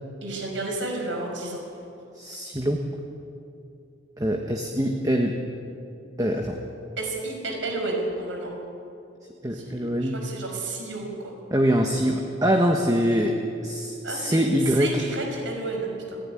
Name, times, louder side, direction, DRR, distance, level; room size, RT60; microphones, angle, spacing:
voice 1, 0.2-1.6 7.0-8.5 9.5-11.3 14.0-14.4 14.8-16.2, right 2 dB, 80° right, 1 dB, 5.5 m, -31 dB
voice 2, 2.1-2.8 4.2-5.3 6.2-6.6 9.4-10.2 11.5-13.3 13.6-15.0, equal, 20° right, 2 dB, 1.3 m, -23 dB
29.5 x 11.0 x 9.9 m, 2.6 s
head